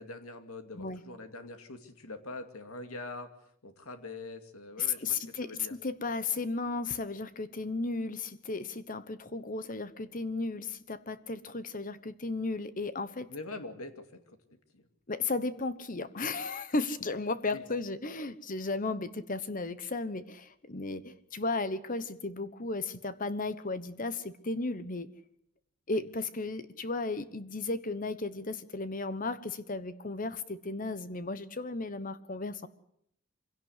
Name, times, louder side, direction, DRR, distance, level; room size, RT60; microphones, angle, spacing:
voice 1, 0.0-3.3 3.6-5.8 13.3-14.9 17.5-17.6 25.9-26.0, left 2 dB, 80° left, 7 dB, 2.4 m, -44 dB
voice 2, 4.8-13.3 15.1-25.1 25.9-32.7, left 3 dB, 40° left, 13 dB, 1.1 m, -35 dB
25.0 x 17.0 x 8.2 m, 0.74 s
head